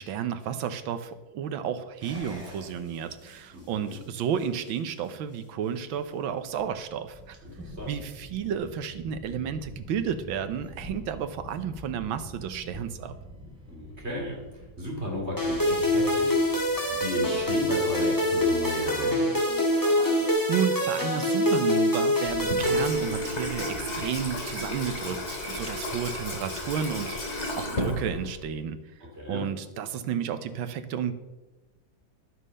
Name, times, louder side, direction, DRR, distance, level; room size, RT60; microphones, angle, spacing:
voice 1, 0.0-7.4 7.9-13.1 20.5-28.8 29.3-31.1, right 8 dB, 85° right, 11 dB, 1.6 m, -32 dB
sound 1, 2.0-20.3, equal, 5° right, 3.8 m, -46 dB
voice 2, 3.5-4.0 7.4-8.0 13.7-14.4 14.8-16.4 16.9-19.4 29.2-29.4, left 1 dB, 35° right, -1 dB, 3.1 m, -34 dB
sound 2, 15.4-23.6, left 1 dB, 10° left, 1.9 m, -25 dB
Water tap faucet / Sink (filling or washing), 22.3-28.5, left 1 dB, 35° left, 2.7 m, -33 dB
11.5 x 8.8 x 5.5 m, 1.1 s
omnidirectional pair, 2.1 m